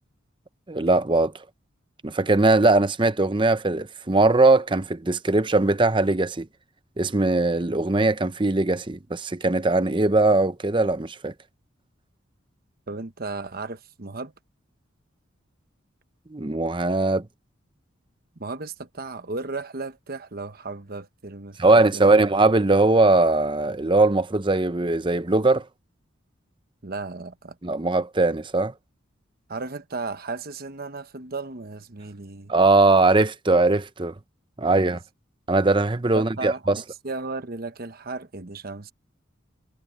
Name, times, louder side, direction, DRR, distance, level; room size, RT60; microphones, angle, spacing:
voice 1, 0.7-1.4 2.0-6.5 7.0-11.3 16.3-17.3 21.6-25.7 27.6-28.7 32.5-34.1 34.6-35.0 35.5-36.8, right 2 dB, 25° right, 0.8 m, -20 dB
voice 2, 12.9-14.3 18.4-22.2 26.8-27.6 29.5-32.5 34.7-35.0 36.1-38.9, right 3 dB, 50° right, 1.1 m, -35 dB
head